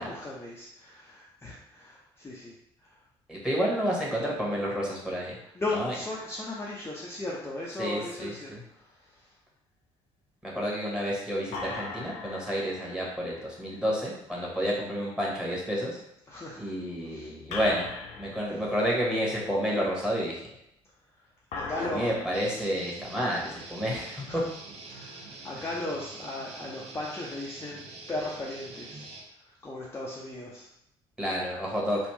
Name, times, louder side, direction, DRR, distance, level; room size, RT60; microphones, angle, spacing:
voice 1, 0.0-2.5 2.8-2.9 5.5-9.3 16.3-16.6 17.0-17.3 21.5-22.1 23.5-23.6 23.9-24.5 24.9-29.0 29.6-30.7, left 2 dB, 20° left, -5 dB, 0.7 m, -37 dB
voice 2, 3.3-5.3 5.7-5.9 7.8-8.6 10.4-16.0 16.6-17.9 18.2-20.3 21.8-24.4 31.2-32.0, equal, 5° right, -4 dB, 1.4 m, -30 dB
sound 1, 6.0-7.8 11.5-14.8 17.5-19.7 21.5-22.4, left 4 dB, 60° left, 0.6 m, -41 dB
Guitar, 22.3-29.2, right 3 dB, 50° right, 1.0 m, -45 dB
3.2 x 2.5 x 3.2 m, 0.79 s
hypercardioid pair, 50°, 14 cm